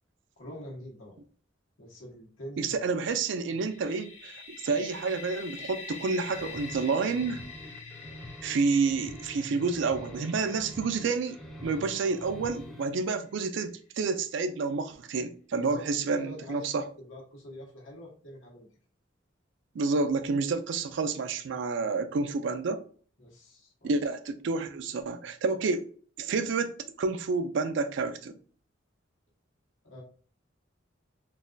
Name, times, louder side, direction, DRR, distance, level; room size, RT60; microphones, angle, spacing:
voice 1, 0.4-1.2 1.8-2.8 3.5-3.7 15.6-15.8 16.1-18.7 23.2-23.9 29.8-30.0, equal, 80° left, 1.1 m, -45 dB
voice 2, 2.6-7.4 8.4-16.8 19.8-22.8 23.8-25.9 26.2-28.4, right 4 dB, 65° right, 0.4 m, -29 dB
sound 1, 3.6-13.3, left 5 dB, 35° left, 0.7 m, -47 dB
sound 2, 6.2-12.9, left 1 dB, 5° left, 0.4 m, -45 dB
3.9 x 2.3 x 2.5 m
head